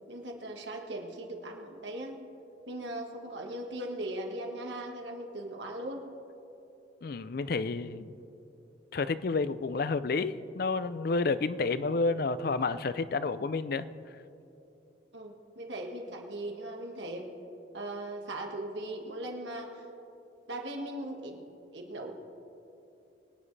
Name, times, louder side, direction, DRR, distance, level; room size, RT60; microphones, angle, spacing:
voice 1, 0.1-2.2 2.7-6.0 15.1-17.3 17.7-19.9 20.5-21.4 21.7-22.1, right 1 dB, 80° right, 2 dB, 1.6 m, -39 dB
voice 2, 7.0-8.1 8.9-13.9, left 3 dB, 55° left, 14 dB, 0.4 m, -30 dB
24.0 x 9.7 x 3.3 m, 2.9 s
head